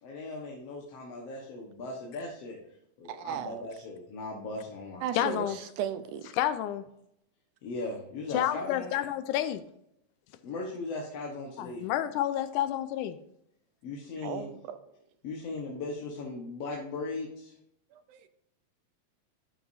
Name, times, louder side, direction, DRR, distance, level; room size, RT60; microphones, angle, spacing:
voice 1, 0.0-2.6 3.0-5.4 7.6-8.9 10.4-11.9 13.8-14.5 15.2-17.5, left 3 dB, 60° left, -2 dB, 2.2 m, -38 dB
voice 2, 3.1-3.7 5.0-6.3 14.2-14.8 17.9-18.3, right 9 dB, 80° right, 10 dB, 2.2 m, -36 dB
voice 3, 5.2-5.6 6.3-6.8 8.3-9.6 11.6-13.2, left 12 dB, 90° left, 10 dB, 2.1 m, -29 dB
12.5 x 6.1 x 2.7 m, 0.76 s
omnidirectional pair, 3.5 m